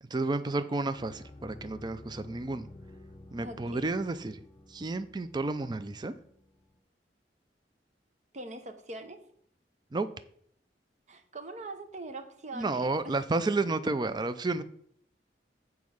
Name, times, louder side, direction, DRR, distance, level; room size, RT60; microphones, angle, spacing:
voice 1, 0.0-2.7 3.3-4.4 4.7-6.1 9.9-10.1 12.5-14.6, right 3 dB, 25° right, 11 dB, 0.4 m, -31 dB
sound 1, 1.0-6.8, left 1 dB, 25° left, 0.8 m, -51 dB
voice 2, 3.4-3.9 8.3-9.2 11.1-13.3, right 2 dB, 45° right, 8 dB, 0.9 m, -43 dB
7.3 x 4.7 x 6.3 m, 0.64 s
head